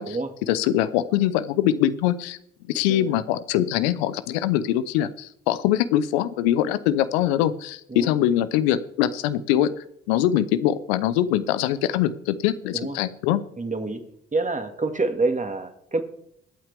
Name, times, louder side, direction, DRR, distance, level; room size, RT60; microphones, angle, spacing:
voice 1, 0.5-2.4 2.7-9.7 10.1-13.4, left 12 dB, 80° left, 14 dB, 0.8 m, -23 dB
voice 2, 13.6-14.0 14.3-16.0, right 3 dB, 25° right, 7 dB, 2.1 m, -27 dB
21.0 x 8.7 x 3.4 m, 0.73 s
hypercardioid pair, 40°, 31 cm